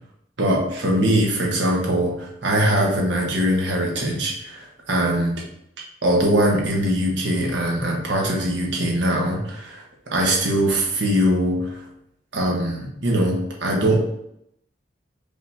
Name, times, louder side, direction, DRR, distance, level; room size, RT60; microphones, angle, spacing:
voice 1, 0.4-5.4 6.0-9.8 10.1-11.7 12.3-14.0, right 1 dB, 75° right, -2 dB, 1.2 m, -21 dB
5.2 x 2.7 x 3.4 m, 0.77 s
head